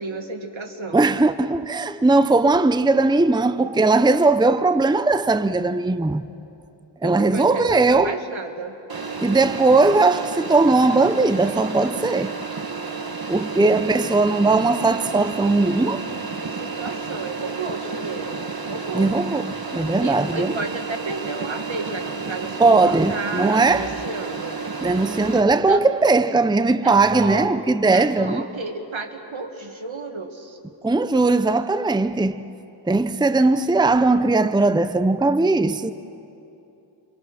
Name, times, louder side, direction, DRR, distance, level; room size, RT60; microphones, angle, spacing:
voice 1, 0.0-1.0 7.0-8.8 16.4-19.1 20.0-24.6 25.7-25.8 26.8-27.5 27.9-30.6, right 3 dB, 75° right, 2.0 m, -32 dB
voice 2, 0.9-6.3 7.0-8.2 9.2-12.3 13.3-16.0 18.9-20.5 22.6-23.9 24.8-28.4 30.8-32.5 32.9-35.9, right 3 dB, 10° right, 0.6 m, -19 dB
sound 1, 8.9-25.4, right 4 dB, 50° right, 1.5 m, -31 dB
30.0 x 25.0 x 6.1 m
wide cardioid pair, 65°, 47 cm